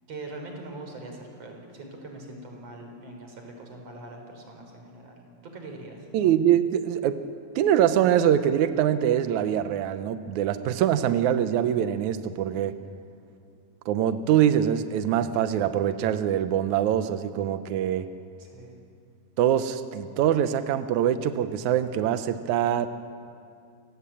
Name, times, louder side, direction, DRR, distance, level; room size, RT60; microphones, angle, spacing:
voice 1, 0.1-6.1 18.4-18.7, right 2 dB, 40° right, 3 dB, 4.8 m, -42 dB
voice 2, 6.1-7.2 7.5-12.8 13.8-18.1 19.4-22.9, right 10 dB, 85° right, 10 dB, 1.6 m, -24 dB
29.5 x 17.5 x 8.5 m, 2.4 s
omnidirectional pair, 4.5 m